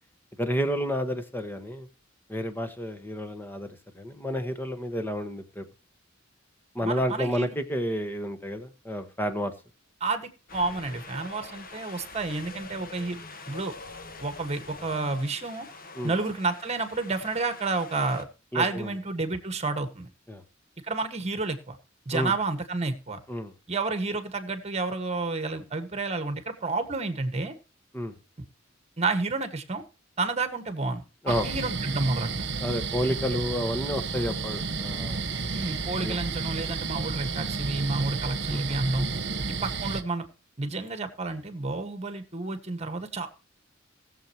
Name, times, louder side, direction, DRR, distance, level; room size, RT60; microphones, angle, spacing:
voice 1, 0.4-1.9 2.3-3.7 3.9-5.6 6.7-9.5 15.9-16.1 18.5-18.9 20.3-20.4 22.1-22.3 23.3-23.5 27.9-28.1 31.2-31.5 32.6-35.2 36.0-36.2 38.5-38.8, equal, 10° left, 8 dB, 1.3 m, -30 dB
voice 2, 6.8-7.5 10.0-13.2 13.5-13.7 14.2-15.7 16.0-18.2 18.5-20.1 20.9-21.8 22.0-23.2 23.7-27.5 29.0-29.8 30.2-31.0 31.4-32.3 35.5-39.1 39.5-40.2 40.6-43.3, right 3 dB, 35° right, 8 dB, 1.6 m, -30 dB
Wind, 10.5-18.2, left 3 dB, 45° left, 1.4 m, -44 dB
sound 1, 31.3-40.0, right 4 dB, 60° right, 1.2 m, -32 dB
19.5 x 7.3 x 3.0 m, 0.34 s
head